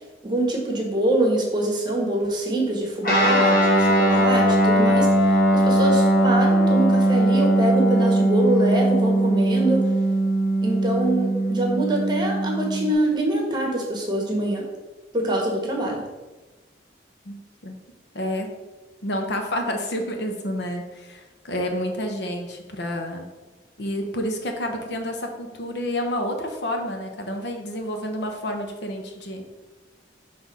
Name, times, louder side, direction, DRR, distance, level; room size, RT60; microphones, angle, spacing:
voice 1, 0.2-5.1 5.5-9.9 10.6-14.7 15.1-16.0, right 1 dB, 25° right, 0 dB, 1.3 m, -24 dB
Guitar, 3.0-12.9, right 1 dB, 50° left, 1.9 m, -19 dB
voice 2, 18.1-18.5 19.0-23.3 23.8-29.4, equal, 70° left, 4 dB, 0.9 m, -29 dB
6.1 x 3.4 x 5.4 m, 1.2 s
head